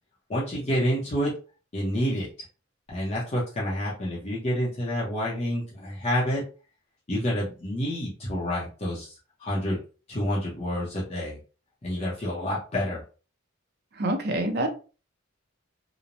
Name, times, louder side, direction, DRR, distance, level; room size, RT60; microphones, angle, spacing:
voice 1, 0.3-1.3 1.7-2.3 2.9-6.4 7.1-9.1 9.4-9.8 10.1-11.4 11.8-13.0, equal, 35° left, -5 dB, 0.6 m, -28 dB
voice 2, 14.0-14.7, right 1 dB, 55° right, 4 dB, 0.6 m, -26 dB
2.9 x 2.0 x 2.5 m, 0.35 s
head